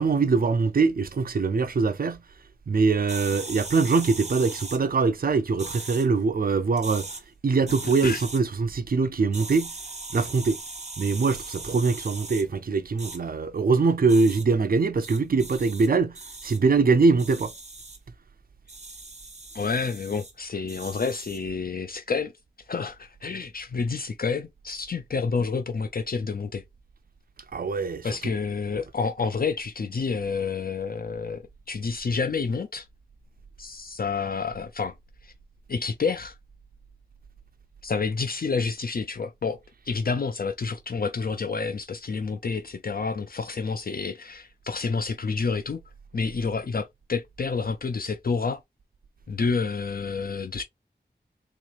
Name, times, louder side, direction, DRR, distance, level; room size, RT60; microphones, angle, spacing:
voice 1, 0.0-2.2 2.7-7.1 7.4-9.7 10.1-10.6 11.0-16.2 16.4-17.5 27.5-28.1, right 4 dB, 55° right, 0.5 m, -23 dB
sound 1, 3.1-4.8 5.6-6.1 6.7-7.2 7.7-8.4 9.3-12.4 13.0-13.2 14.1-14.4 15.0-15.9 16.1-16.6 17.2-18.0 18.7-20.3 20.7-21.4, right 3 dB, 40° right, 0.9 m, -39 dB
voice 2, 7.8-8.2 19.5-22.3 22.7-26.6 28.0-31.4 31.7-32.9 33.6-34.9 35.2-35.3 35.7-36.3 37.8-45.8 46.1-48.6 49.3-50.6, left 4 dB, 55° left, 0.4 m, -29 dB
3.5 x 3.1 x 2.4 m
wide cardioid pair, 65°, 18 cm